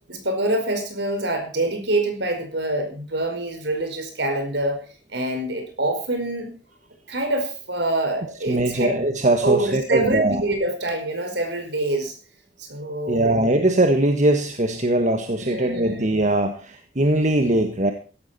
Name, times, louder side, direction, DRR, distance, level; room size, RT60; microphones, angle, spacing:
voice 1, 0.1-4.8 5.1-6.5 7.1-8.9 9.4-12.1 12.6-13.4 15.4-16.1, right 2 dB, 65° right, 6 dB, 4.9 m, -25 dB
voice 2, 8.5-10.4 13.1-17.9, right 1 dB, 40° right, 6 dB, 1.5 m, -21 dB
16.5 x 13.0 x 4.3 m, 0.37 s
head